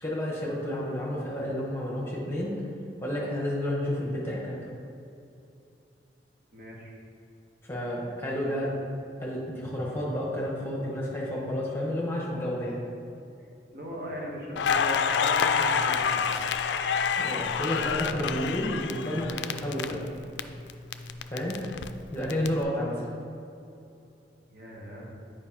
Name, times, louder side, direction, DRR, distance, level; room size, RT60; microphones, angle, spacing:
voice 1, 0.0-2.5 3.0-4.7 7.6-8.7 9.2-12.8 17.2-20.0 21.3-21.6 22.1-23.0, left 1 dB, 15° left, -4 dB, 1.1 m, -31 dB
voice 2, 6.5-7.0 8.3-8.6 13.7-16.2 24.5-25.1, equal, 55° right, -2 dB, 1.1 m, -39 dB
Crackle, 14.6-20.4 20.7-22.5, left 6 dB, 75° left, 0.3 m, -27 dB
8.9 x 4.9 x 2.9 m, 2.7 s
head